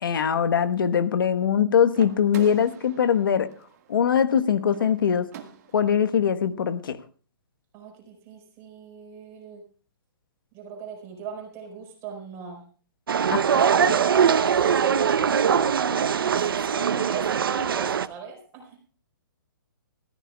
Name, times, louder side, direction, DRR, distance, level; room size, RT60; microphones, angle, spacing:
voice 1, 0.0-3.5 3.9-5.3 5.7-7.0 13.3-13.9, left 8 dB, 70° left, 9 dB, 1.2 m, -22 dB
sound 1, 1.9-6.0, right 9 dB, 45° right, 1.7 m, -45 dB
voice 2, 7.7-9.6 10.5-12.6 13.9-15.7 16.1-18.8, right 6 dB, 20° right, 2 dB, 4.6 m, -38 dB
sound 2, 13.1-18.1, right 7 dB, 75° right, 0.8 m, -22 dB
22.0 x 14.5 x 2.3 m, 0.40 s
hypercardioid pair, 155°, 12 cm